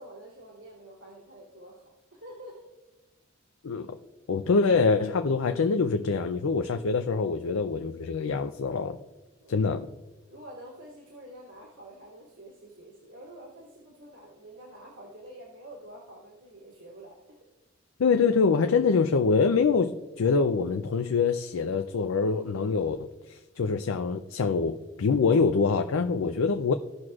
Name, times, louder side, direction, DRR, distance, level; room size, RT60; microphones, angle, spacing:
voice 1, 0.0-1.8 2.1-2.6 9.4-9.7 10.3-17.4, right 1 dB, 90° right, -6 dB, 2.5 m, -47 dB
voice 2, 3.6-4.0 4.3-9.0 9.5-9.9 18.0-26.7, left 4 dB, 75° left, 7 dB, 0.5 m, -25 dB
17.5 x 6.1 x 2.4 m, 1.1 s
head